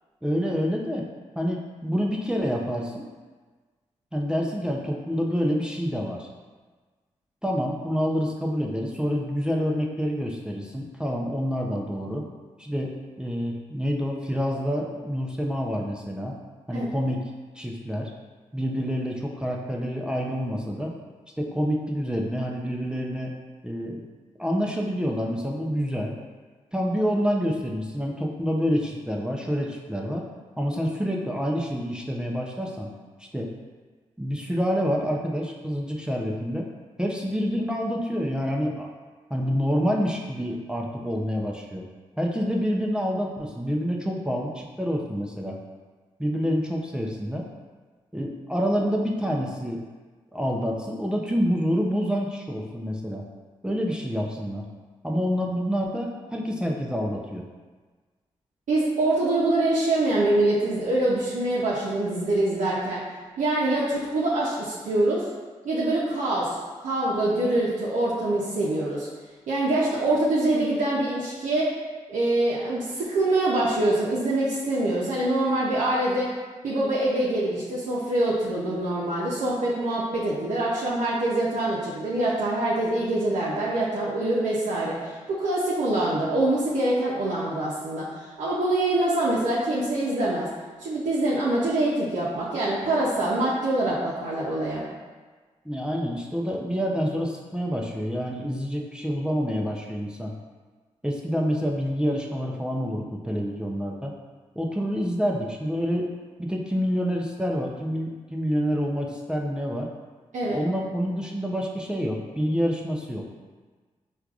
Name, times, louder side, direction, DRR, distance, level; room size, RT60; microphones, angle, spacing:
voice 1, 0.2-1.1 1.4-3.0 4.1-6.3 7.4-12.2 12.6-16.4 16.7-17.2 17.5-18.1 18.5-20.9 21.4-23.3 23.6-24.0 24.4-26.2 26.7-30.3 30.6-32.9 33.3-33.5 34.2-36.7 37.0-38.9 39.3-41.8 42.2-45.6 46.2-47.5 48.1-49.8 50.3-53.3 53.6-54.7 55.0-57.5 95.6-100.3 101.0-104.1 104.6-106.1 106.4-109.9 110.5-113.3, equal, 5° right, -1 dB, 0.5 m, -27 dB
voice 2, 58.7-63.0 63.4-65.2 65.6-69.1 69.5-71.7 72.1-76.3 76.6-88.1 88.4-90.5 90.8-94.8 110.3-110.6, right 1 dB, 70° right, -7 dB, 0.6 m, -24 dB
4.5 x 2.4 x 2.4 m, 1.4 s
supercardioid pair, 45°, 13 cm